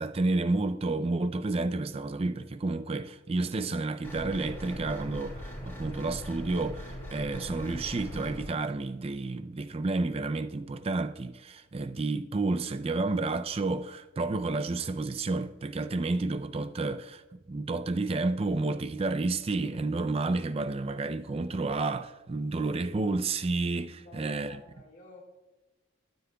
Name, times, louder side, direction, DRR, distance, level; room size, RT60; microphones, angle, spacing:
voice 1, 0.0-17.2 17.5-24.6, right 3 dB, 30° right, 0.4 m, -30 dB
sound 1, 4.0-8.4, equal, 15° left, 3.8 m, -40 dB
voice 2, 24.0-25.2, left 1 dB, 40° left, 1.9 m, -51 dB
13.0 x 11.5 x 2.3 m
head